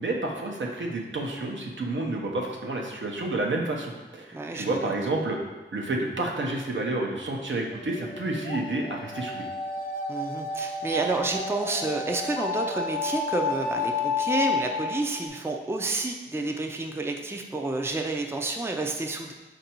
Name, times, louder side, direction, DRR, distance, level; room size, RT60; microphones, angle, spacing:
voice 1, 0.0-5.4 5.7-9.4, right 2 dB, 75° right, 0 dB, 0.7 m, -30 dB
voice 2, 4.3-4.9 10.1-19.3, right 2 dB, 10° right, 3 dB, 0.4 m, -30 dB
sound 1, 7.7-15.3, left 4 dB, 50° left, 0.5 m, -31 dB
4.5 x 2.6 x 4.2 m, 1.3 s
wide cardioid pair, 65°, 20 cm